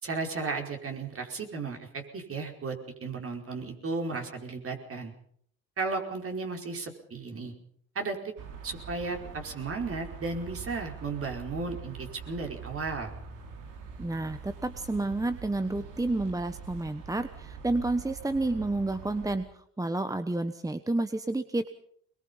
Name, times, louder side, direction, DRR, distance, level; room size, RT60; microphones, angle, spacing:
voice 1, 0.0-5.1 5.8-7.5 7.9-8.3 8.6-13.1, right 4 dB, 45° right, 2 dB, 4.9 m, -34 dB
sound 1, 8.4-19.4, right 5 dB, 80° right, 3.6 m, -44 dB
voice 2, 14.0-21.7, right 2 dB, 10° right, 10 dB, 1.1 m, -30 dB
22.5 x 22.0 x 5.6 m, 0.63 s
supercardioid pair, 75°, 32 cm